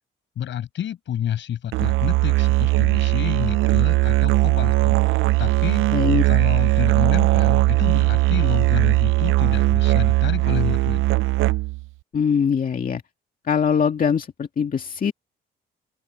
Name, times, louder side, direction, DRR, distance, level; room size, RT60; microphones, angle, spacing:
voice 1, 0.4-5.8 6.2-11.0, left 10 dB, 70° left, 5.5 m, -29 dB
Musical instrument, 1.7-11.9, right 20 dB, 85° right, 0.4 m, -19 dB
voice 2, 5.9-6.2 12.1-13.0 13.4-15.1, left 6 dB, 45° left, 2.2 m, -22 dB
open air
cardioid pair, 90°, 20 cm